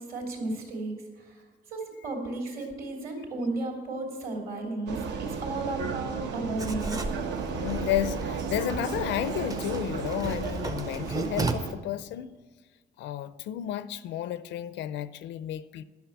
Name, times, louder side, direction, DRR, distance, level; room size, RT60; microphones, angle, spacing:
voice 1, 0.0-7.2, right 2 dB, 50° right, 3.0 m, -34 dB
Vehicle, 4.9-11.7, right 5 dB, 65° right, 1.0 m, -34 dB
Writing, 6.6-11.5, right 2 dB, 20° right, 0.6 m, -35 dB
voice 2, 7.5-12.3 13.0-15.8, left 12 dB, 70° left, 0.5 m, -32 dB
11.5 x 6.4 x 7.2 m
cardioid pair, 175°, 19 cm